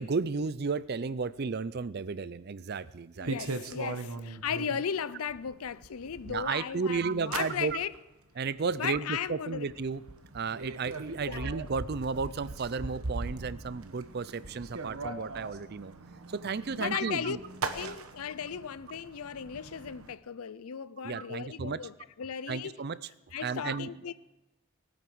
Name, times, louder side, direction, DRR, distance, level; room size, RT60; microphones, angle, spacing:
voice 1, 0.0-3.3 6.3-7.8 8.4-10.0 10.3-15.9 16.3-17.4 17.8-17.9 21.0-21.8 22.5-23.0 23.4-23.9, right 4 dB, 45° right, 0.5 m, -33 dB
voice 2, 3.2-7.9 8.8-9.7 11.3-11.5 16.8-17.4 17.7-22.7 23.3-24.1, left 7 dB, 80° left, 0.5 m, -36 dB
sound 1, 3.3-4.8 5.3-6.6 6.9-8.0 8.4-8.8 9.2-9.3 9.6-20.1, right 3 dB, 75° right, 1.1 m, -40 dB
19.5 x 9.3 x 6.2 m
head